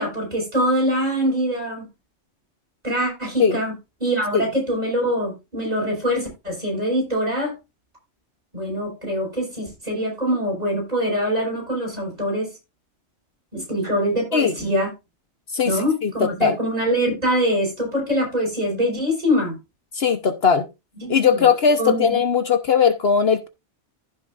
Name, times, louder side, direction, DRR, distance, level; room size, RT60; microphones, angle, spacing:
voice 1, 0.0-1.9 2.8-3.7 4.0-7.5 8.5-12.5 13.5-14.9 15.6-19.5 21.0-21.4 21.8-22.2, equal, 35° right, 5.8 m, -23 dB
voice 2, 16.0-16.6 19.9-20.7 21.1-23.5, left 6 dB, 60° left, 1.2 m, -19 dB
15.5 x 6.3 x 2.5 m
omnidirectional pair, 1.2 m